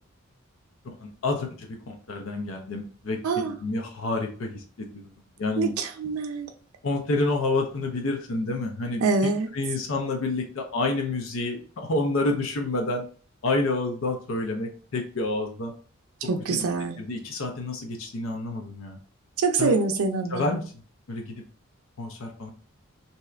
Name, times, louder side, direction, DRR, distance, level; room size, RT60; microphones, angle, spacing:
voice 1, 0.8-5.1 5.4-5.7 6.8-9.0 9.5-13.1 13.4-15.7 16.5-16.6 17.0-19.0 19.6-19.8 20.3-20.7 21.1-21.3 22.0-22.5, left 2 dB, 70° left, 2 dB, 0.5 m, -29 dB
voice 2, 3.2-3.5 5.6-6.5 9.0-9.5 16.3-17.0 19.4-20.5, right 4 dB, 85° right, 7 dB, 0.4 m, -25 dB
2.7 x 2.4 x 3.1 m, 0.40 s
head